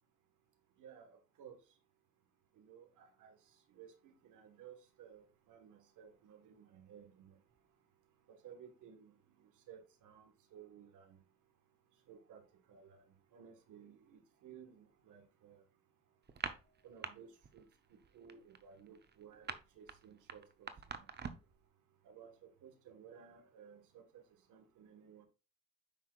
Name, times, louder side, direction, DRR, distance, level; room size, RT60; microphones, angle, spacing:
voice 1, 0.8-1.6 2.6-3.4 3.7-7.4 8.3-9.1 9.4-11.2 12.1-12.4 12.7-13.0 13.3-15.6 16.8-17.6 18.1-21.0 22.0-24.2 24.5-25.2, right 8 dB, 85° right, 5 dB, 1.5 m, -57 dB
sound 1, 16.3-17.1 17.4-17.7 18.0-21.6, right 6 dB, 35° right, 0.8 m, -44 dB
7.3 x 5.7 x 2.4 m, 0.31 s
cardioid pair, 90°, 30 cm